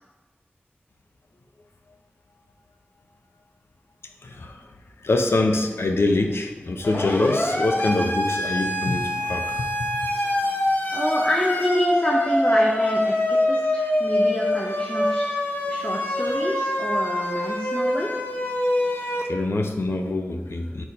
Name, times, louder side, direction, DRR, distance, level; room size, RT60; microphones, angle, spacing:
voice 1, 4.2-4.7 5.0-9.9 18.9-20.8, left 2 dB, 85° left, 4 dB, 0.6 m, -25 dB
Siren, 6.8-19.2, left 1 dB, 55° left, 0.9 m, -24 dB
voice 2, 10.9-15.3 15.7-18.1, left 1 dB, 25° left, -3 dB, 0.7 m, -27 dB
4.7 x 4.1 x 5.2 m, 1.2 s
wide cardioid pair, 60°, 4 cm